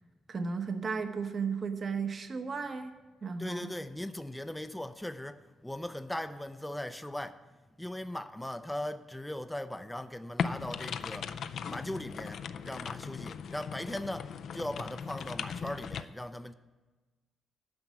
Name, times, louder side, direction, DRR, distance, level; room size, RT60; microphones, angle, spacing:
voice 1, 0.3-2.9 3.2-3.7, right 5 dB, 40° right, 0.9 m, -34 dB
voice 2, 3.4-7.4 7.8-16.5, left 1 dB, 5° left, 0.5 m, -39 dB
sound 1, 10.4-16.0, left 7 dB, 65° left, 0.4 m, -38 dB
9.7 x 6.0 x 8.1 m
cardioid pair, 90°, 0 cm